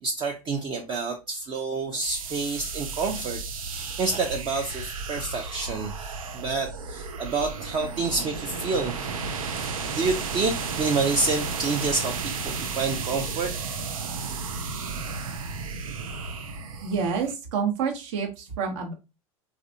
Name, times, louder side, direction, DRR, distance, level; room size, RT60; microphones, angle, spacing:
voice 1, 0.0-9.2 9.6-13.5, right 4 dB, 30° right, 0.5 m, -28 dB
sound 1, 2.0-17.3, right 5 dB, 80° right, 0.5 m, -33 dB
voice 2, 16.8-18.9, right 6 dB, 60° right, 0.9 m, -28 dB
3.3 x 2.5 x 2.7 m
hypercardioid pair, 85°, 18 cm